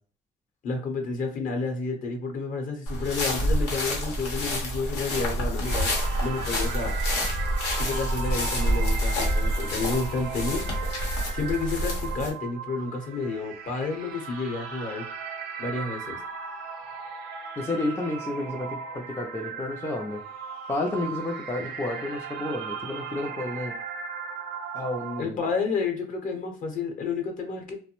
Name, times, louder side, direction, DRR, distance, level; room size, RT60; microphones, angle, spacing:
voice 1, 0.6-5.9 6.2-6.9 7.8-10.7 11.3-15.0 15.6-16.2 25.2-27.7, left 4 dB, 50° left, 4 dB, 0.8 m, -30 dB
sound 1, 2.9-12.3, equal, 85° left, 0.9 m, -27 dB
sound 2, 5.6-25.2, right 6 dB, 70° right, 0.6 m, -37 dB
voice 2, 17.6-20.2 20.7-23.8 24.7-25.4, left 2 dB, 15° left, 1 dB, 0.4 m, -31 dB
2.5 x 2.1 x 2.9 m, 0.41 s
cardioid pair, 110°, 17 cm